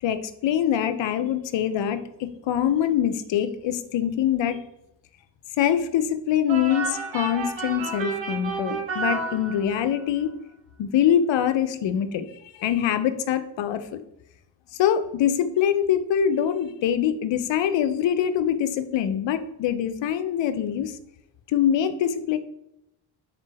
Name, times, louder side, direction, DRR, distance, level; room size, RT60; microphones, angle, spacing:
voice 1, 0.0-4.6 5.6-10.3 10.8-12.3 12.5-14.0 14.8-21.0 21.5-22.4, left 9 dB, 65° left, 10 dB, 0.6 m, -24 dB
sound 1, 6.5-10.0, right 4 dB, 60° right, 1.4 m, -31 dB
4.0 x 3.2 x 3.3 m, 0.81 s
cardioid pair, 60°, 49 cm